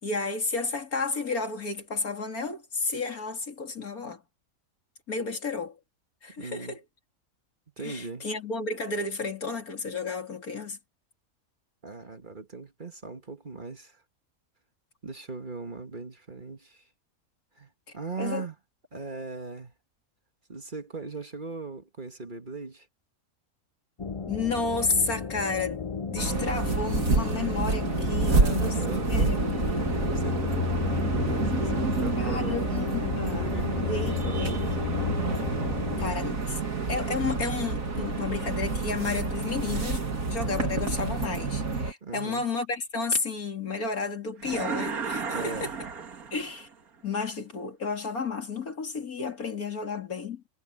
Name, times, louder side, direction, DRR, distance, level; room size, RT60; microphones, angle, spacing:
voice 1, 0.0-4.2 5.1-5.8 6.2-6.8 7.8-10.8 18.2-18.5 24.3-28.7 29.1-29.7 32.2-33.4 33.9-34.7 36.0-36.6 36.9-45.7 46.3-46.7 47.0-50.4, left 4 dB, 80° left, 3.5 m, -32 dB
voice 2, 6.4-6.8 7.8-8.3 11.8-14.0 15.0-16.9 17.6-18.6 18.9-19.7 20.5-22.9 28.3-29.4 29.6-32.6 33.3-34.6 35.9-36.0 42.0-42.5 45.3-45.7, right 4 dB, 35° right, 1.8 m, -39 dB
sound 1, 24.0-36.1, left 6 dB, 60° left, 0.3 m, -33 dB
sound 2, 26.2-41.9, right 3 dB, 65° right, 2.8 m, -28 dB
sound 3, 44.4-46.7, right 5 dB, 80° right, 2.3 m, -33 dB
omnidirectional pair, 1.5 m